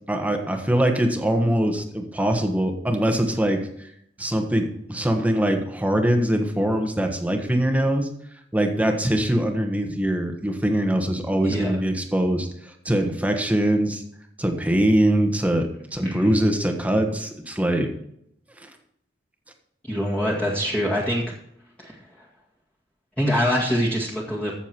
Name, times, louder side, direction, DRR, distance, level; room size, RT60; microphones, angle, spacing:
voice 1, 0.1-3.9 4.2-8.1 8.5-14.0 14.4-17.9 18.6-18.7, right 1 dB, 10° right, 4 dB, 1.3 m, -22 dB
voice 2, 19.9-21.2 21.8-22.3 23.2-24.5, equal, 5° left, -6 dB, 1.9 m, -24 dB
14.5 x 7.0 x 4.5 m, 0.72 s
head